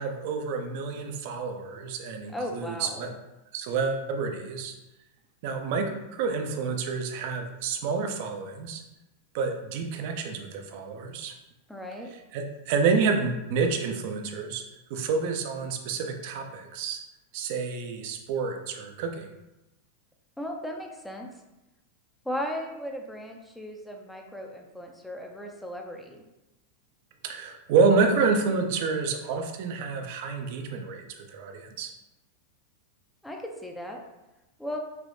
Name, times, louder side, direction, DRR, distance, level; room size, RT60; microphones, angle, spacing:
voice 1, 0.0-3.1 3.5-4.7 5.4-8.8 9.3-11.3 12.3-14.6 14.9-17.0 17.3-19.3 27.2-31.9, right 4 dB, 50° right, 4 dB, 0.4 m, -28 dB
voice 2, 2.3-3.1 11.7-12.1 20.4-21.3 22.2-26.2 33.2-34.0 34.6-34.8, equal, 5° left, 2 dB, 0.5 m, -36 dB
3.3 x 3.0 x 2.5 m, 0.97 s
figure-of-eight pair, 90°, 0 cm